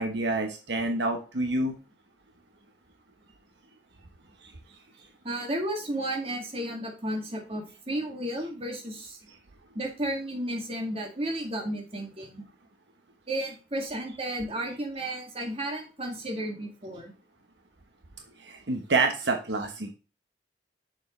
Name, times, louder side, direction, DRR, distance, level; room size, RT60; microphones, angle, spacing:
voice 1, 0.0-1.7 18.4-19.9, right 3 dB, 75° right, 4 dB, 1.1 m, -27 dB
voice 2, 5.2-9.2 9.7-12.4 13.3-17.1, right 1 dB, 35° right, 1 dB, 2.2 m, -33 dB
6.9 x 6.5 x 3.2 m, 0.34 s
head